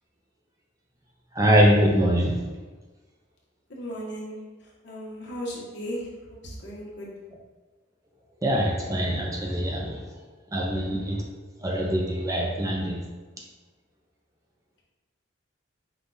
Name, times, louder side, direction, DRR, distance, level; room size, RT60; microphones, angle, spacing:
voice 1, 1.3-2.4 8.4-10.1 10.5-11.2 11.6-13.0, equal, 15° right, -1 dB, 0.4 m, -23 dB
voice 2, 3.7-4.4 4.8-7.1, equal, 55° left, -4 dB, 1.1 m, -36 dB
5.2 x 2.3 x 3.9 m, 1.3 s
head